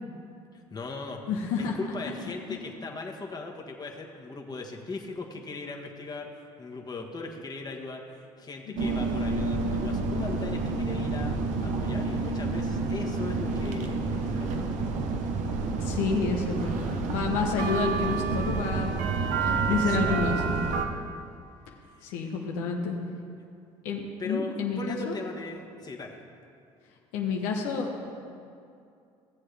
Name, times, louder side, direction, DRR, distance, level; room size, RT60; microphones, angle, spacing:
voice 1, 0.5-1.2 1.6-11.3 11.6-14.7 19.5-20.0 21.9-22.1 24.2-26.2, left 3 dB, 30° left, 1 dB, 1.5 m, -38 dB
voice 2, 1.3-1.7 2.5-2.6 8.7-9.0 15.8-20.4 22.0-23.0 23.8-25.2 27.1-28.1, left 5 dB, 80° left, 0 dB, 1.1 m, -30 dB
sound 1, 8.8-20.8, right 4 dB, 70° right, 1.0 m, -29 dB
16.5 x 7.6 x 3.4 m, 2.5 s
hypercardioid pair, 65°, 13 cm